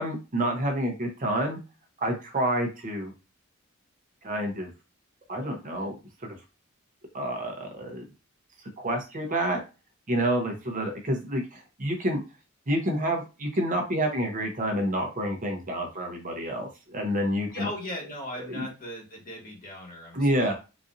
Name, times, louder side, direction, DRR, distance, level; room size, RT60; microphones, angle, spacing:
voice 1, 0.0-1.6 2.0-3.1 4.2-4.7 5.3-6.0 6.2-6.4 7.1-8.0 8.8-9.6 10.1-12.2 12.7-17.7 18.5-18.7 20.1-20.5, right 1 dB, 40° right, 3 dB, 0.8 m, -28 dB
voice 2, 17.5-20.5, left 1 dB, 40° left, -1 dB, 1.4 m, -38 dB
4.0 x 2.6 x 2.5 m, 0.30 s
head